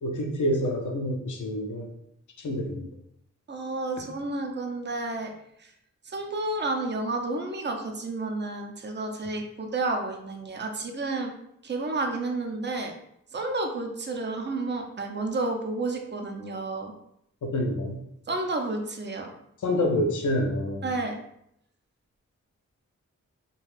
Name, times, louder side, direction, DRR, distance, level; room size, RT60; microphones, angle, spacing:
voice 1, 0.0-1.9 2.4-2.9 17.4-18.0 19.6-20.9, left 1 dB, 75° left, 1 dB, 0.6 m, -27 dB
voice 2, 3.5-5.3 5.6-5.7 6.1-11.3 11.6-12.9 13.3-16.9 18.3-19.3 20.8-21.2, right 2 dB, 35° right, 3 dB, 0.6 m, -31 dB
2.4 x 2.3 x 3.2 m, 0.74 s
cardioid pair, 45°, 31 cm